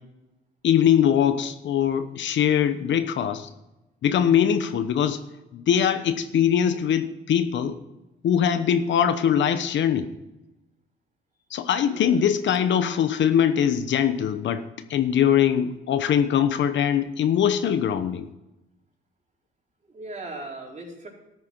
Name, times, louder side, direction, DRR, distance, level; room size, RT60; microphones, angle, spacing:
voice 1, 0.6-3.5 4.0-5.2 5.5-7.8 8.2-10.1 11.5-14.6 14.9-18.3, left 9 dB, 70° left, 10 dB, 1.0 m, -22 dB
voice 2, 11.9-12.2 19.8-21.1, right 2 dB, 35° right, -2 dB, 4.3 m, -38 dB
13.0 x 9.4 x 4.6 m, 0.95 s
cardioid pair, 90°, 20 cm